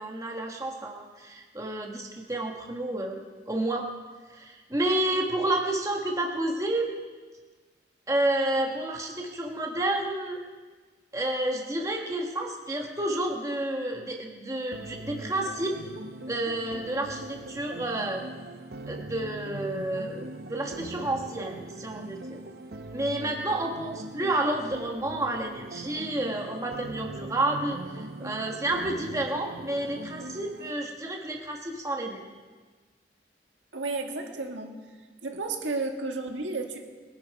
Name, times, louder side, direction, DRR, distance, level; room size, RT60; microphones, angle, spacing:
voice 1, 0.0-3.9 4.3-7.0 8.1-10.4 11.1-15.8 16.3-18.2 18.9-22.4 22.9-32.3, right 1 dB, 15° right, 1 dB, 1.3 m, -30 dB
sound 1, 14.7-30.7, right 2 dB, 55° right, 0.8 m, -41 dB
voice 2, 33.7-34.8 35.2-36.9, right 3 dB, 90° right, 3 dB, 1.8 m, -32 dB
21.0 x 11.0 x 4.7 m, 1.4 s
head